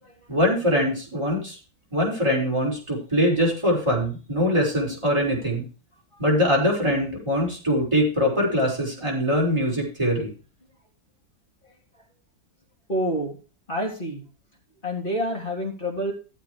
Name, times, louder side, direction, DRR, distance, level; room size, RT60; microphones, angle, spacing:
voice 1, 0.3-1.6 1.9-5.6 6.2-10.3, equal, 15° right, -2 dB, 5.6 m, -23 dB
voice 2, 12.9-13.4 13.7-14.3 14.8-16.1, equal, 30° left, -2 dB, 3.7 m, -27 dB
15.5 x 8.2 x 3.3 m, 0.36 s
omnidirectional pair, 1.8 m